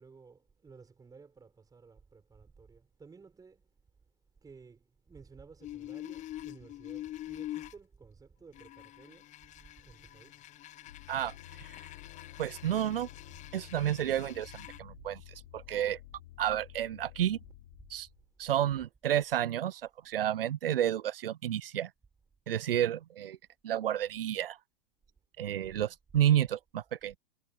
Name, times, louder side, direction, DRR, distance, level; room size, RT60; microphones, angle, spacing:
voice 1, 0.0-3.6 4.4-9.3 9.8-10.5, right 5 dB, 10° right, 5.9 m, -55 dB
sound 1, 5.6-7.8 8.5-14.8, left 14 dB, 25° left, 1.0 m, -45 dB
sound 2, 10.9-18.3, left 15 dB, 55° left, 3.9 m, -52 dB
voice 2, 12.4-13.1 13.5-15.2 15.5-16.0 16.4-17.4 17.9-18.1 18.4-21.9 22.5-23.4 23.6-24.6 25.4-27.2, right 11 dB, 70° right, 0.6 m, -30 dB
figure-of-eight pair, 105°, 29 cm